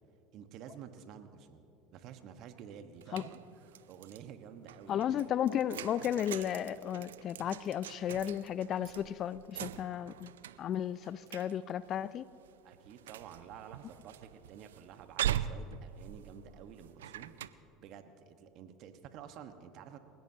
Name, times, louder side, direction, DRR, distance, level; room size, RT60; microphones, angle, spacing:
voice 1, 0.3-5.4 12.6-17.4 17.8-20.0, right 8 dB, 55° right, 1.3 m, -51 dB
sound 1, 2.9-4.2 4.7-17.5, right 11 dB, 85° right, 0.4 m, -42 dB
voice 2, 4.9-10.3 10.6-12.3, left 10 dB, 45° left, 0.4 m, -34 dB
29.0 x 17.0 x 2.9 m
hypercardioid pair, 75°, 0 cm